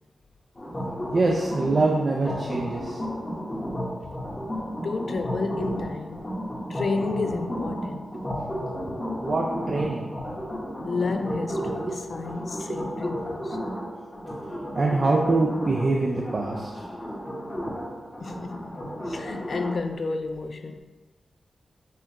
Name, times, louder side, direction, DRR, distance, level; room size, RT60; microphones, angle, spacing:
sound 1, 0.6-19.8, equal, 30° left, 1.0 m, -33 dB
voice 1, 1.1-3.0 8.1-8.2 9.0-10.1 11.8-12.0 12.4-12.8 14.8-16.8, right 3 dB, 55° right, 0.4 m, -25 dB
voice 2, 4.8-6.4 6.7-8.1 10.8-13.6 18.2-20.8, left 3 dB, 65° left, 0.3 m, -31 dB
5.5 x 2.4 x 2.9 m
cardioid pair, 65°, 0 cm